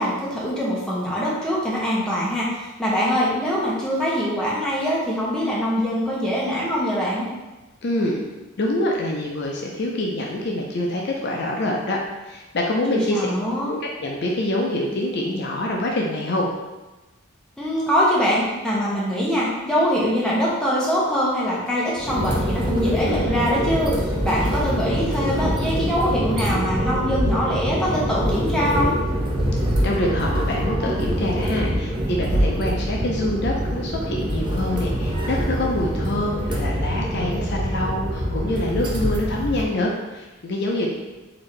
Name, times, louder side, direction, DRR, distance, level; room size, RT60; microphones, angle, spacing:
voice 1, 0.0-2.5 2.8-7.3 12.9-13.7 17.6-28.9 40.7-40.9, equal, 5° left, -7 dB, 0.8 m, -23 dB
voice 2, 7.8-8.2 8.6-13.3 13.6-16.5 29.8-40.9, left 1 dB, 50° left, -1 dB, 0.5 m, -25 dB
sound 1, 22.0-39.6, equal, 20° right, 0.4 m, -24 dB
4.0 x 2.7 x 3.2 m, 1.1 s
head